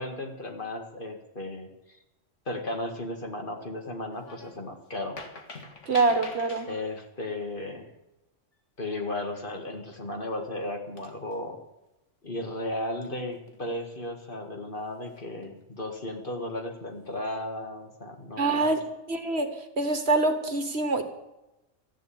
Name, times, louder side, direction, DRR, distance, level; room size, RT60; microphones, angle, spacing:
voice 1, 0.0-1.7 2.5-5.2 6.7-7.9 8.8-11.6 12.2-18.6, left 1 dB, 40° left, 4 dB, 2.1 m, -35 dB
sound 1, 4.1-4.6 4.9-7.0 9.6-9.8 10.4-10.5 11.0-11.6 13.0-13.7 14.9-15.5 16.0-16.2, left 3 dB, 65° left, 2.2 m, -45 dB
voice 2, 5.9-6.7 18.4-18.8 19.1-21.0, right 3 dB, 55° right, 8 dB, 1.6 m, -25 dB
14.0 x 10.5 x 8.7 m, 0.96 s
omnidirectional pair, 1.3 m